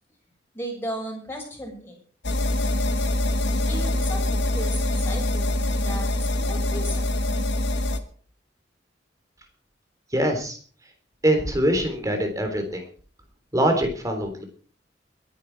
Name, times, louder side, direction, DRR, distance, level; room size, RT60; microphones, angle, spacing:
voice 1, 0.5-2.0 3.7-7.1, equal, 15° left, 0 dB, 6.4 m, -35 dB
sound 1, 2.2-8.0, left 1 dB, 75° left, 1.6 m, -24 dB
voice 2, 10.1-10.6 11.2-12.8 13.5-14.4, right 1 dB, 20° right, 5 dB, 3.6 m, -23 dB
22.0 x 10.5 x 4.8 m, 0.44 s
head